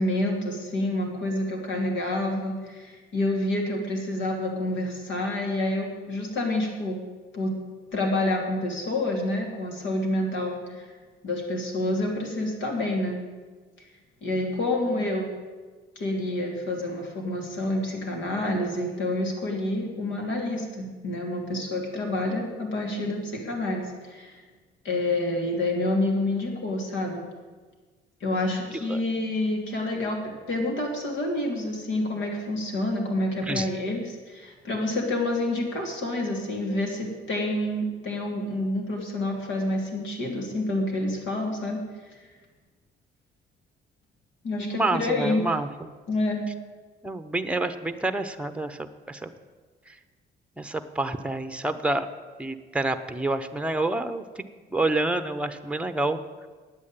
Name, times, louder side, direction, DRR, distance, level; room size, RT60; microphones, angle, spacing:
voice 1, 0.0-7.0 7.3-7.5 7.9-10.8 11.2-13.2 14.2-15.3 16.0-24.3 24.8-27.2 28.2-41.8 42.1-42.2 44.4-45.5 46.1-46.4, left 1 dB, 70° left, 1 dB, 3.1 m, -28 dB
voice 2, 44.6-45.9 47.0-49.3 50.6-52.1 52.4-54.2 54.7-56.2, right 2 dB, 5° right, 9 dB, 0.9 m, -28 dB
9.7 x 8.3 x 9.0 m, 1.4 s
cardioid pair, 90°, 20 cm